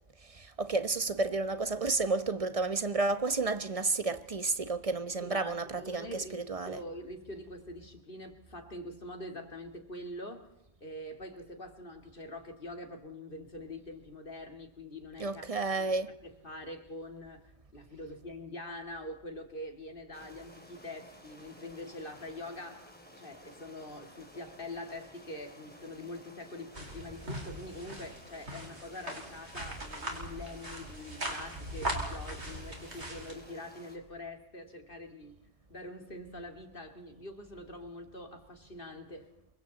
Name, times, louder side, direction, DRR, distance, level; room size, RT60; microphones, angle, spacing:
voice 1, 0.3-6.1 6.3-6.8 15.2-16.2, right 3 dB, 30° right, 1.2 m, -31 dB
voice 2, 5.2-6.4 6.7-10.5 10.8-15.5 15.8-15.9 16.2-22.9 23.2-35.4 35.7-39.3, left 1 dB, 50° left, 2.7 m, -44 dB
sound 1, 20.1-34.0, equal, 10° left, 3.1 m, -55 dB
sound 2, 26.7-33.3, right 1 dB, 75° right, 4.7 m, -40 dB
27.5 x 24.0 x 4.2 m
omnidirectional pair, 1.1 m